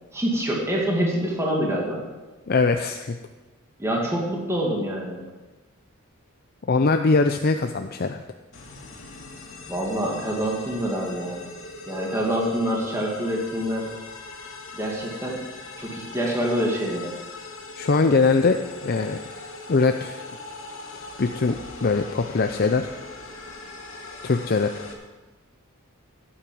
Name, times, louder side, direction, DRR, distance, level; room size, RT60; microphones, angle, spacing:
voice 1, 0.1-2.0 3.8-5.2 9.7-11.4 11.9-13.9 14.7-15.4 15.8-17.1, equal, 15° right, -2 dB, 2.3 m, -26 dB
voice 2, 2.5-3.2 6.7-8.2 17.8-19.2 19.7-20.2 21.2-22.9 24.2-24.9, left 4 dB, 45° left, 6 dB, 0.5 m, -22 dB
sound 1, 8.5-24.9, left 3 dB, 65° left, 2.4 m, -40 dB
16.0 x 8.7 x 5.4 m, 1.2 s
head